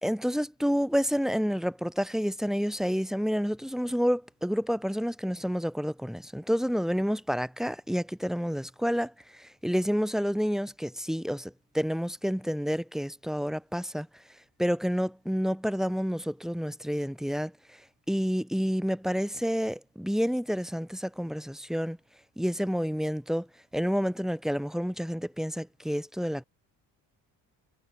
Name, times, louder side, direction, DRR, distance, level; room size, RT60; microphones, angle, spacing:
voice 1, 0.0-14.1 14.6-17.8 18.1-22.0 22.4-23.5 23.7-26.4, equal, ahead, 2.6 m, -29 dB
hypercardioid pair, 60°, 49 cm